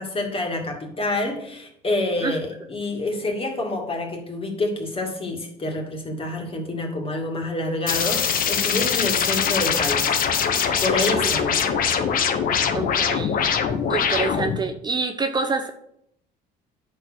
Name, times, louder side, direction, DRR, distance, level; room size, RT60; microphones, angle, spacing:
voice 1, 0.0-10.1 10.8-11.6, left 2 dB, 35° left, 2 dB, 2.5 m, -27 dB
sound 1, 7.9-14.6, left 7 dB, 55° left, 1.1 m, -22 dB
voice 2, 12.7-13.4 13.9-15.7, right 4 dB, 25° right, 7 dB, 0.8 m, -27 dB
10.0 x 4.5 x 6.4 m, 0.75 s
cardioid pair, 110°, 17 cm